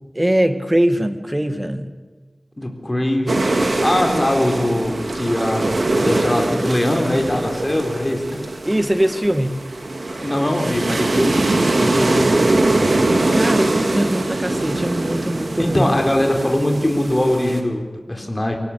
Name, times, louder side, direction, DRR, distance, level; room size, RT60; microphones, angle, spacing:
voice 1, 0.1-1.9 8.7-9.6 13.3-15.9, right 1 dB, 15° right, 9 dB, 1.9 m, -21 dB
voice 2, 2.6-3.5 3.8-8.4 10.1-13.0 15.6-18.6, left 1 dB, 20° left, 3 dB, 4.1 m, -21 dB
sound 1, 3.3-17.6, right 2 dB, 65° right, 3.0 m, -22 dB
24.5 x 18.0 x 8.5 m, 1.3 s
wide cardioid pair, 70°, 0 cm